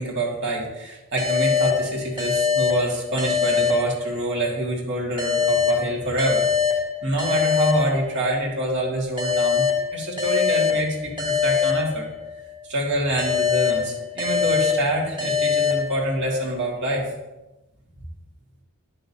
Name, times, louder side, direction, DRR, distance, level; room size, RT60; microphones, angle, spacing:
voice 1, 0.0-9.7 9.9-12.1 12.7-17.1, right 1 dB, 55° right, -3 dB, 2.1 m, -26 dB
sound 1, 1.2-4.5 5.2-8.5 9.2-12.5 13.2-16.5, left 6 dB, 25° right, 1.7 m, -24 dB
11.0 x 6.5 x 2.8 m, 1.0 s
head